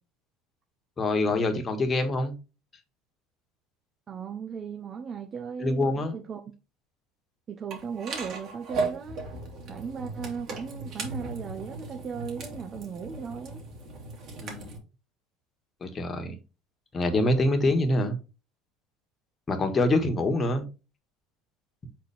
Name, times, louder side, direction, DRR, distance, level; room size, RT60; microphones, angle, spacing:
voice 1, 1.0-2.3 5.6-6.1 14.4-14.7 15.8-16.4 16.9-18.2 19.5-20.6, left 2 dB, 25° left, 1.6 m, -25 dB
voice 2, 4.1-6.4 7.5-9.2 9.7-13.6, right 6 dB, 40° right, 1.0 m, -37 dB
sound 1, 7.7-14.8, right 3 dB, 55° right, 2.6 m, -37 dB
6.4 x 4.2 x 3.5 m
hypercardioid pair, 80°, 0 cm